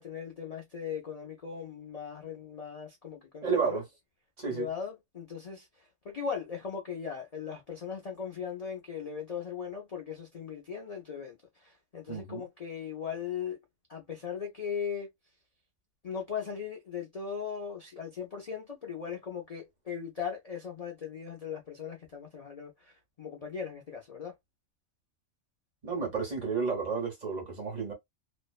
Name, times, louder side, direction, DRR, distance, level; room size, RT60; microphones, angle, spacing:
voice 1, 0.0-3.8 4.5-13.6 13.9-15.1 16.0-24.3, left 7 dB, 65° left, 0.3 m, -38 dB
voice 2, 3.4-3.8 4.4-4.7 12.1-12.4 25.8-27.9, right 5 dB, 35° right, 1.0 m, -31 dB
2.6 x 2.1 x 2.3 m
omnidirectional pair, 1.4 m